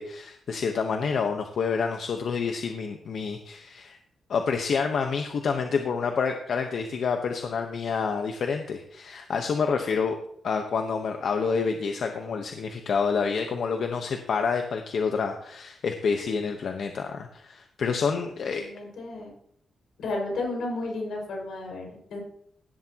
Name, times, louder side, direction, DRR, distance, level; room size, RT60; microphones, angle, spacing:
voice 1, 0.0-4.0 4.3-10.1 10.4-18.7, left 5 dB, 65° left, 4 dB, 1.2 m, -28 dB
voice 2, 18.4-19.3 20.0-22.2, left 2 dB, 85° left, 0 dB, 5.9 m, -33 dB
17.0 x 11.5 x 3.0 m, 0.69 s
wide cardioid pair, 130°, 0 cm